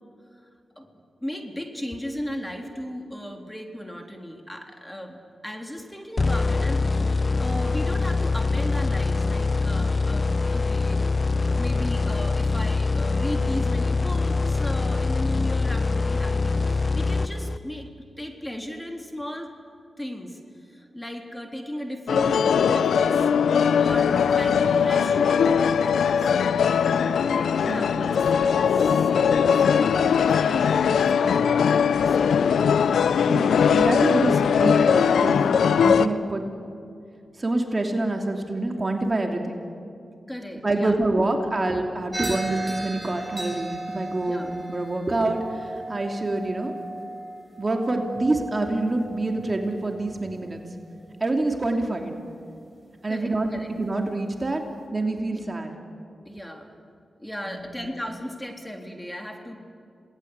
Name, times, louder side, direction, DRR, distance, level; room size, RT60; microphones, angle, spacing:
voice 1, 0.8-7.1 7.4-11.0 11.5-17.9 18.2-19.5 20.0-23.3 23.7-25.5 26.2-26.9 27.3-32.4 33.5-33.9 40.3-41.0 44.2-44.5 53.1-53.7 56.3-56.7 57.2-59.6, equal, 10° left, 3 dB, 3.6 m, -36 dB
sound 1, 6.2-17.8, left 3 dB, 45° left, 0.7 m, -24 dB
sound 2, 22.1-36.1, left 7 dB, 85° left, 0.7 m, -20 dB
voice 2, 33.3-36.4 37.4-39.6 40.6-46.7 47.6-50.6 51.2-52.2 53.0-54.6 54.9-55.7 57.4-57.8, right 2 dB, 40° right, 3 dB, 2.9 m, -26 dB
sound 3, 42.1-50.5, right 2 dB, 10° right, 6.2 m, -36 dB
27.5 x 19.5 x 8.2 m, 2.5 s
cardioid pair, 45°, 0 cm